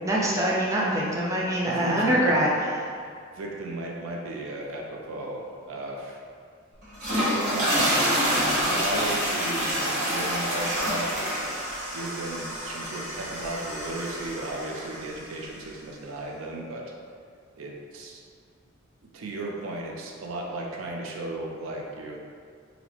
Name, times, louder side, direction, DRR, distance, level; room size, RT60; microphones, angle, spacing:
voice 1, 0.0-2.5, right 1 dB, 15° right, -5 dB, 0.5 m, -24 dB
voice 2, 1.7-2.2 3.0-6.2 7.1-11.6 11.9-16.9 17.5-18.2 19.1-22.2, right 2 dB, 70° right, -1 dB, 0.4 m, -35 dB
sound 1, 6.8-15.2, equal, 55° right, 1.2 m, -27 dB
3.9 x 2.0 x 2.9 m, 2.1 s
head